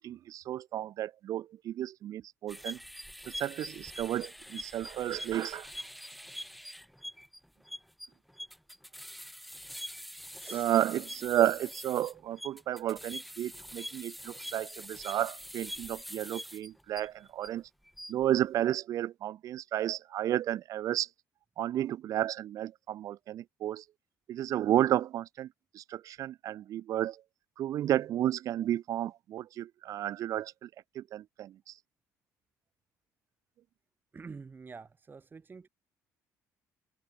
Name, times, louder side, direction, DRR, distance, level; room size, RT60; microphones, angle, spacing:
voice 1, 0.0-2.8 3.3-5.7 10.5-17.7 18.1-21.1 21.6-23.8 24.3-25.5 25.7-27.2 27.6-30.7 31.0-31.7, right 12 dB, 55° right, 0.3 m, -32 dB
sound 1, 2.5-17.5 17.9-18.2, equal, ahead, 2.1 m, -44 dB
voice 2, 10.3-10.7 34.1-35.7, right 4 dB, 30° right, 4.2 m, -47 dB
supercardioid pair, 85°, 7 cm